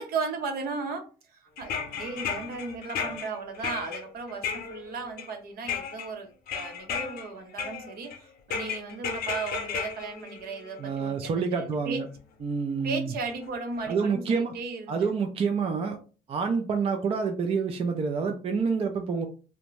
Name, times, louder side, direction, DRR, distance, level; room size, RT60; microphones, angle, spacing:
voice 1, 0.0-12.0 12.8-15.1, right 4 dB, 65° right, 5 dB, 0.8 m, -36 dB
sound 1, 1.6-5.3 5.7-6.1 6.5-7.3 7.6-8.2 8.5-11.1 12.2-12.3 13.3-13.4 13.8-13.9, left 6 dB, 65° left, 0.7 m, -34 dB
voice 2, 10.8-12.1 12.4-13.1 13.9-14.6 14.9-16.0 16.3-19.3, right 5 dB, 35° right, 4 dB, 0.4 m, -27 dB
2.6 x 2.1 x 3.1 m, 0.36 s
cardioid pair, 110°, 17 cm